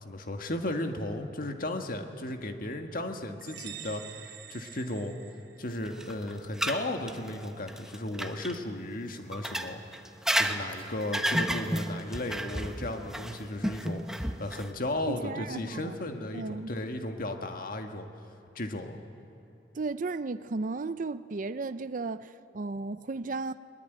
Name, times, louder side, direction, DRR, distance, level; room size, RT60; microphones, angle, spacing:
voice 1, 0.0-5.1 5.6-9.8 10.3-18.1 18.6-19.0, left 1 dB, 50° left, 1.7 m, -35 dB
sound 1, 3.4-6.0, right 10 dB, 65° right, 1.2 m, -46 dB
sound 2, 5.9-8.6 9.3-14.7, right 1 dB, 5° right, 0.9 m, -32 dB
voice 2, 15.1-16.0 16.3-16.7 19.7-23.6, right 3 dB, 45° right, 0.5 m, -34 dB
21.5 x 19.5 x 9.3 m
head